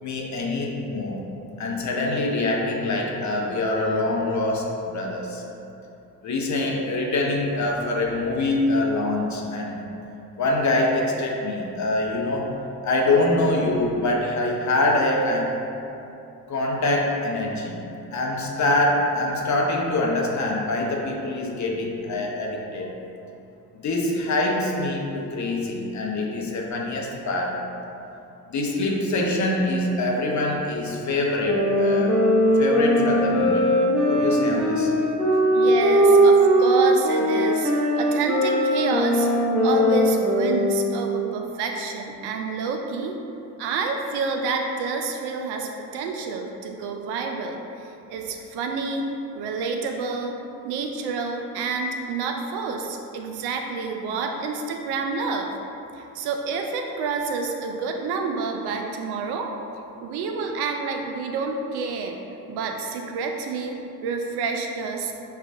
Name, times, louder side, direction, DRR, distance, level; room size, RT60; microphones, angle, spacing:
voice 1, 0.0-1.3 1.6-5.4 6.2-9.8 10.4-12.5 12.8-15.5 16.5-17.8 18.1-22.9 23.8-27.6 28.5-32.2 32.6-33.7 34.0-34.9, left 2 dB, 35° left, -1 dB, 0.7 m, -24 dB
sound 1, 31.4-41.1, equal, ahead, 0.9 m, -20 dB
voice 2, 35.5-39.3 39.6-43.2 43.6-49.1 49.3-50.4 50.6-55.5 55.9-59.5 60.0-62.2 62.5-65.1, right 4 dB, 55° right, 3 dB, 0.5 m, -28 dB
5.5 x 2.4 x 2.4 m, 2.8 s
hypercardioid pair, 50°, 48 cm